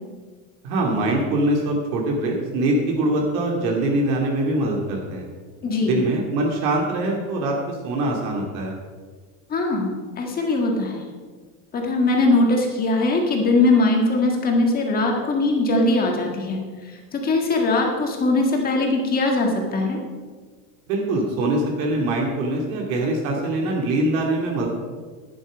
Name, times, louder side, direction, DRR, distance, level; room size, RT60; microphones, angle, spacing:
voice 1, 0.6-5.3 5.9-8.7 20.9-24.7, right 1 dB, 80° right, 0 dB, 2.6 m, -23 dB
voice 2, 5.6-6.0 9.5-11.0 11.7-20.0, left 2 dB, 20° left, 1 dB, 1.7 m, -21 dB
11.0 x 10.5 x 5.1 m, 1.5 s
cardioid pair, 175°, 42 cm